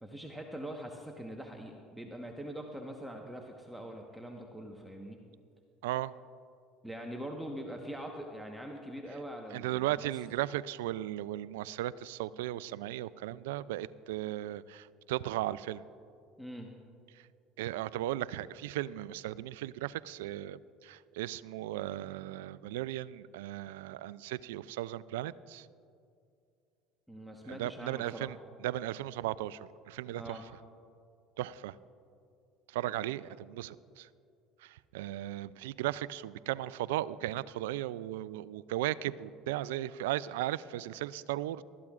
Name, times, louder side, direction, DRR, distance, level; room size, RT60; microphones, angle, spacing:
voice 1, 0.0-5.2 6.8-10.1 16.4-16.7 27.1-28.4 30.1-30.4, equal, 5° right, 1 dB, 1.2 m, -43 dB
voice 2, 5.8-6.1 9.5-15.8 17.6-25.7 27.5-28.4 28.6-30.4 31.4-31.7 32.7-34.1 34.6-41.6, right 14 dB, 85° right, 19 dB, 0.3 m, -36 dB
20.0 x 13.0 x 2.4 m, 2.4 s
hypercardioid pair, 80°, 0 cm